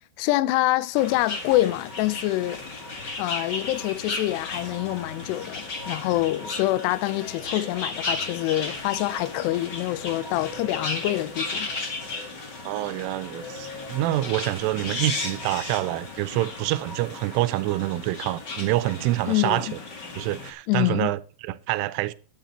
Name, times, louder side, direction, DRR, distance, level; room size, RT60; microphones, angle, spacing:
voice 1, 0.2-2.6 3.2-11.7 19.3-19.8 20.7-21.1, left 16 dB, 85° left, 2.4 m, -26 dB
sound 1, 0.9-20.5, left 3 dB, 60° left, 1.1 m, -35 dB
sound 2, 5.6-6.1 6.4-6.6 7.0-7.8 8.1-8.4 8.8-11.8 12.1-12.3 12.6-14.5, left 1 dB, 40° left, 5.2 m, -44 dB
voice 2, 12.6-19.7 20.2-22.1, right 16 dB, 85° right, 3.1 m, -26 dB
11.0 x 9.6 x 4.3 m
omnidirectional pair, 5.6 m